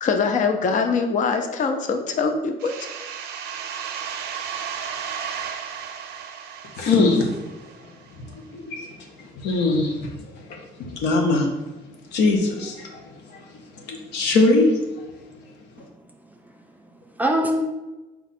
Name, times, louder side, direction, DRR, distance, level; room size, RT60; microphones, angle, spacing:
voice 1, 0.0-2.7, left 5 dB, 50° left, 6 dB, 0.5 m, -23 dB
sound 1, 2.6-8.1, right 7 dB, 75° right, 0.5 m, -34 dB
voice 2, 6.8-7.3 8.2-8.3 8.5-11.5 12.1-13.5 13.7-14.8, left 3 dB, 80° left, 2 dB, 0.8 m, -22 dB
voice 3, 15.8-16.1 16.4-17.6, equal, 10° right, 2 dB, 0.4 m, -26 dB
4.2 x 2.3 x 4.1 m, 1.1 s
cardioid pair, 110°, 17 cm